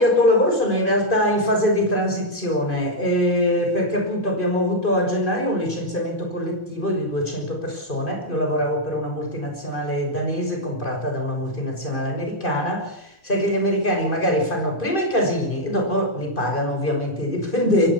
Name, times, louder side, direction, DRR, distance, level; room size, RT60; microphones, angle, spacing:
voice 1, 0.0-17.9, left 1 dB, 15° left, 4 dB, 6.0 m, -23 dB
23.0 x 17.5 x 7.3 m, 0.79 s
omnidirectional pair, 3.3 m